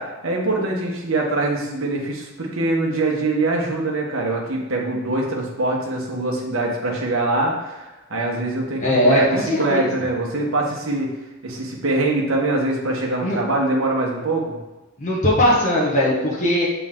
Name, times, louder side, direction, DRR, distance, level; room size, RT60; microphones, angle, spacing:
voice 1, 0.0-11.1 11.4-14.6, right 2 dB, 65° right, -1 dB, 1.3 m, -23 dB
voice 2, 8.8-9.9 13.2-13.4 15.0-16.7, equal, 35° left, -6 dB, 1.2 m, -19 dB
7.6 x 3.8 x 3.7 m, 1.1 s
head